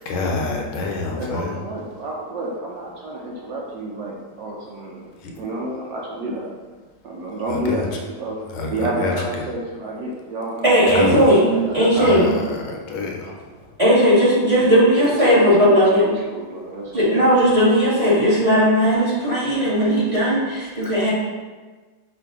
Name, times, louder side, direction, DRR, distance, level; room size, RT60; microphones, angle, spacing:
voice 1, 0.0-1.6 5.2-5.4 7.3-8.0 8.5-9.5 10.9-11.4 12.0-13.8 16.8-16.9, left 3 dB, 80° left, 0 dB, 1.5 m, -28 dB
voice 2, 1.2-5.1 5.4-6.5 7.0-12.4 13.2-13.3 14.4-17.2, right 1 dB, 70° right, -3 dB, 1.1 m, -30 dB
voice 3, 10.6-12.3 13.8-16.0 16.9-21.1, equal, 20° right, -9 dB, 1.2 m, -16 dB
5.8 x 2.6 x 3.5 m, 1.3 s
omnidirectional pair, 2.3 m